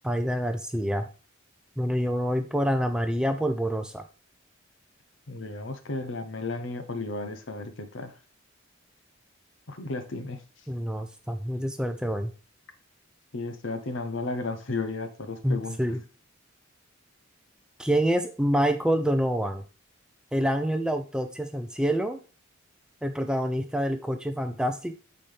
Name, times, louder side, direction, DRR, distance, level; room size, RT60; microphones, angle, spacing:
voice 1, 0.0-1.1 1.8-4.0 10.7-12.3 15.4-16.0 17.8-19.6 20.3-22.2 23.0-24.9, equal, 5° right, 7 dB, 0.5 m, -27 dB
voice 2, 5.3-8.1 9.7-10.4 13.3-15.8, left 3 dB, 65° left, 9 dB, 0.9 m, -33 dB
8.8 x 4.2 x 3.4 m, 0.35 s
head